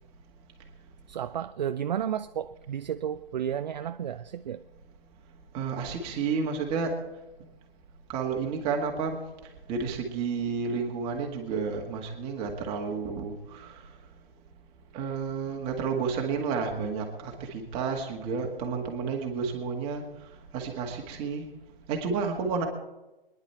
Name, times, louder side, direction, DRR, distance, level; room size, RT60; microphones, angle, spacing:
voice 1, 1.1-4.6, right 9 dB, 50° right, 0.5 m, -32 dB
voice 2, 5.5-7.1 8.1-14.0 14.9-21.5 21.9-22.7, right 5 dB, 20° right, 2.0 m, -31 dB
22.0 x 11.0 x 4.5 m
hypercardioid pair, 150°, 29 cm